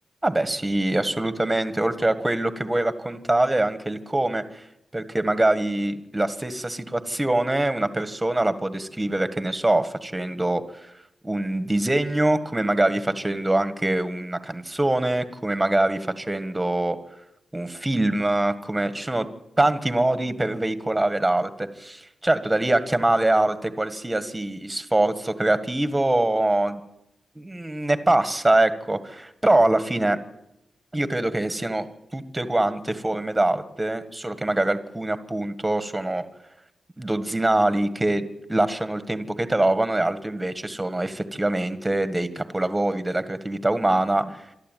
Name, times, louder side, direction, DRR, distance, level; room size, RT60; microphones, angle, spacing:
voice 1, 0.2-4.7 4.9-10.9 11.2-17.0 17.5-19.2 19.6-26.8 27.3-30.2 30.9-31.9 32.1-36.2 37.0-44.5, right 1 dB, 10° right, 11 dB, 1.7 m, -24 dB
27.0 x 12.5 x 9.3 m, 0.85 s
wide cardioid pair, 120°, 0 cm